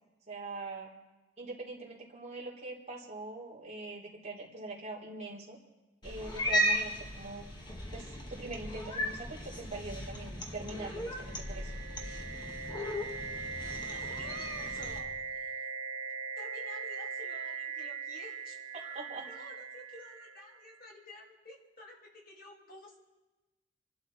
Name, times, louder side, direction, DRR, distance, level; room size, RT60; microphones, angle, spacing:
voice 1, 0.3-0.9 1.4-5.6 6.0-7.5 7.9-11.7 18.7-19.3, right 2 dB, 35° right, -5 dB, 3.6 m, -43 dB
Cat, 6.0-15.0, equal, 25° left, 1.9 m, -36 dB
sound 1, 10.9-20.8, right 5 dB, 75° right, 0.7 m, -40 dB
voice 2, 13.9-15.7 16.4-23.0, left 2 dB, 50° left, -1 dB, 2.8 m, -52 dB
27.5 x 12.0 x 4.3 m, 1.1 s
head